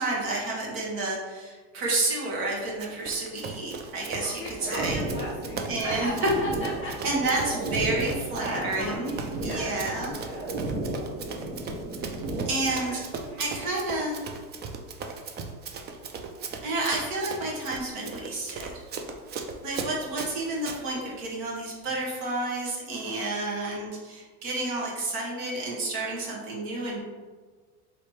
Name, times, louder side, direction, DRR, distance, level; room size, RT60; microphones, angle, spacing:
voice 1, 0.0-5.0 5.7-6.1 7.0-9.1 9.4-10.1 10.6-10.8 12.4-13.0 13.4-14.3 16.6-18.8 19.6-27.0, right 2 dB, 50° right, -3 dB, 1.4 m, -30 dB
Run, 2.8-20.8, right 4 dB, 25° right, 0.4 m, -38 dB
voice 2, 4.2-7.2 8.4-9.8 10.2-10.5 12.7-13.7, left 1 dB, 25° left, -3 dB, 1.3 m, -38 dB
sound 1, 4.6-12.8, right 2 dB, 80° right, 1.3 m, -34 dB
3.2 x 2.9 x 4.6 m, 1.4 s
supercardioid pair, 105°, 43 cm